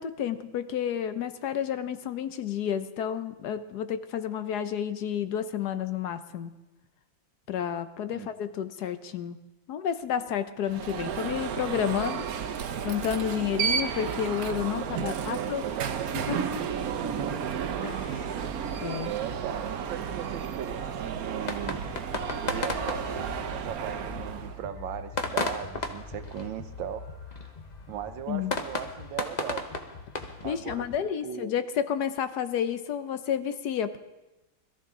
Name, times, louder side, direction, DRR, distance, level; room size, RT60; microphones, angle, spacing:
voice 1, 0.0-6.5 7.5-9.4 9.7-12.2 12.8-15.6 16.3-16.4 17.8-18.2 18.8-19.2 28.3-28.5 30.4-34.0, left 9 dB, 65° left, 11 dB, 1.2 m, -30 dB
Alarm, 10.7-24.6, right 7 dB, 60° right, 1.0 m, -32 dB
voice 2, 14.7-16.7 17.0-17.5 18.1-18.5 19.1-21.8 22.4-27.4 27.9-29.6 30.4-31.6, right 10 dB, 75° right, 9 dB, 1.5 m, -38 dB
sound 1, 21.4-31.0, left 3 dB, 40° left, 0.6 m, -36 dB
21.5 x 13.5 x 3.7 m, 0.99 s
omnidirectional pair, 2.1 m